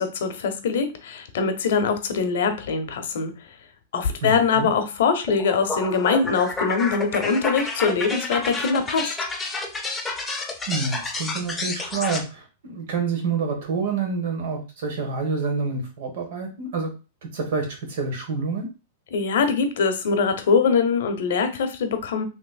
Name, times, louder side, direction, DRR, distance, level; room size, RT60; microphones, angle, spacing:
voice 1, 0.0-3.3 3.9-9.1 19.1-22.2, left 5 dB, 75° left, 8 dB, 0.6 m, -23 dB
voice 2, 4.2-4.7 10.7-16.9 17.2-18.7, right 4 dB, 65° right, 3 dB, 1.1 m, -28 dB
sound 1, 5.3-12.2, left 3 dB, 10° left, 0.5 m, -30 dB
3.3 x 2.9 x 2.2 m, 0.31 s
hypercardioid pair, 140°, 0 cm